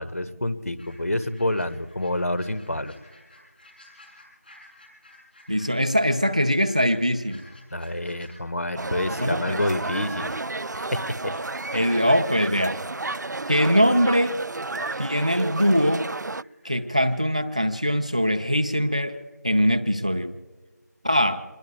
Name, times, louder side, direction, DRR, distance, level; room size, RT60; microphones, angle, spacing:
voice 1, 0.0-2.9 7.7-10.4 10.7-11.3, left 1 dB, 55° left, 13 dB, 1.4 m, -28 dB
sound 1, 0.8-18.8 19.1-19.2, left 1 dB, 35° left, 6.9 m, -54 dB
voice 2, 5.5-7.5 9.2-9.6 11.7-12.8 13.5-14.4 15.0-16.1 16.6-20.3 21.0-21.4, equal, 20° right, 8 dB, 0.6 m, -22 dB
sound 2, 8.8-16.4, right 3 dB, 80° right, 0.4 m, -32 dB
27.0 x 21.0 x 2.3 m, 1.3 s
figure-of-eight pair, 175°, 9 cm